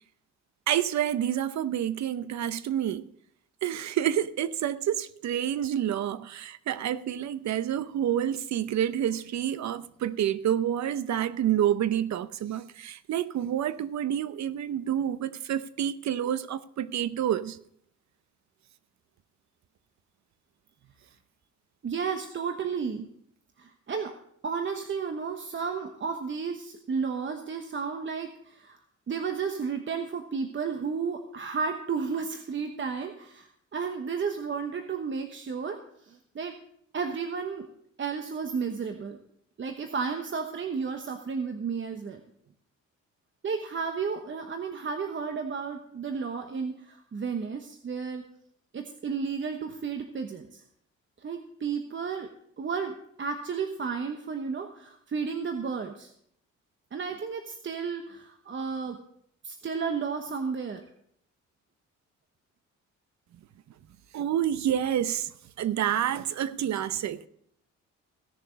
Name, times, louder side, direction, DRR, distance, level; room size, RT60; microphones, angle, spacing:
voice 1, 0.7-3.1 3.6-17.6 64.1-65.3 65.6-67.3, right 10 dB, 65° right, 0.8 m, -28 dB
voice 2, 21.8-23.1 23.6-24.1 24.4-28.8 29.1-36.6 36.9-37.7 38.0-39.2 39.6-42.2 43.4-48.2 48.7-50.6 51.2-52.3 52.6-56.1 56.9-59.0 59.4-60.8, right 5 dB, 40° right, 1.1 m, -33 dB
16.5 x 6.8 x 5.1 m
cardioid pair, 90°, 30 cm